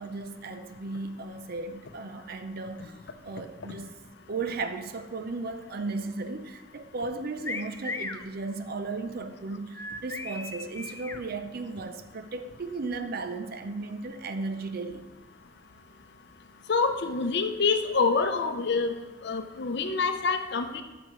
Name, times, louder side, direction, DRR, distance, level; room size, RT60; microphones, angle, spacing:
voice 1, 0.0-4.0 4.3-15.1, right 3 dB, 50° right, 0.6 m, -35 dB
sound 1, 7.4-8.2 9.7-11.2, left 3 dB, 15° left, 0.4 m, -36 dB
voice 2, 16.7-20.8, left 4 dB, 60° left, 0.7 m, -26 dB
12.0 x 7.0 x 3.1 m
head